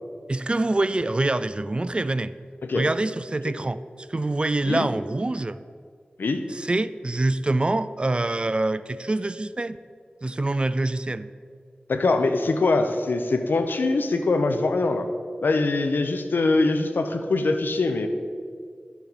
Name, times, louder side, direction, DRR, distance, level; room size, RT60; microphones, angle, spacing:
voice 1, 0.3-2.3 2.8-3.8 4.1-5.6 6.5-9.8 10.2-11.3, right 2 dB, 30° right, 14 dB, 0.3 m, -25 dB
voice 2, 11.9-15.1 15.4-18.1, left 3 dB, 90° left, 7 dB, 0.7 m, -23 dB
11.5 x 7.1 x 4.1 m, 2.1 s
wide cardioid pair, 60°, 3 cm